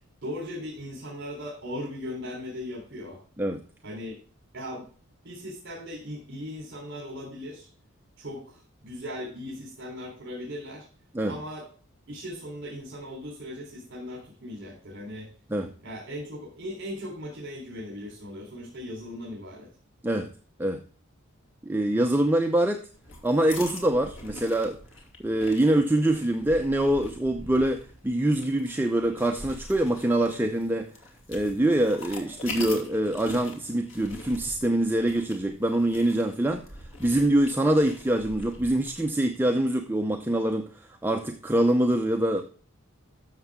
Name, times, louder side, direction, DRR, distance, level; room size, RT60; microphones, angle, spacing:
voice 1, 0.2-3.2 3.8-4.2 4.5-4.9 5.2-7.7 8.2-10.8 11.2-11.7 12.1-15.3 15.8-19.7, left 1 dB, 55° right, -3 dB, 3.7 m, -38 dB
voice 2, 21.6-22.8 23.2-24.8 25.2-30.9 31.3-36.6 37.0-40.7 41.0-42.4, right 1 dB, 10° right, 3 dB, 0.6 m, -24 dB
sound 1, 22.9-39.1, left 2 dB, 65° left, 2.7 m, -43 dB
13.0 x 7.0 x 3.7 m, 0.41 s
head